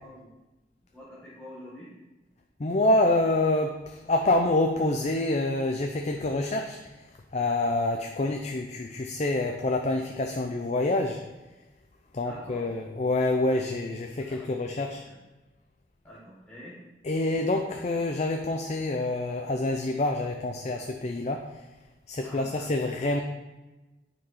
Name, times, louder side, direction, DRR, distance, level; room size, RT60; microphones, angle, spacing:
voice 1, 0.0-0.3 0.9-1.9 12.2-12.7 13.5-13.7 14.2-14.5 15.1-15.2 16.0-16.8 22.2-22.7, left 1 dB, 10° left, -9 dB, 1.3 m, -46 dB
voice 2, 2.6-6.8 7.3-11.2 12.1-15.0 17.0-21.5 22.1-23.2, left 2 dB, 40° left, 3 dB, 0.5 m, -27 dB
9.1 x 4.6 x 4.2 m, 1.1 s
head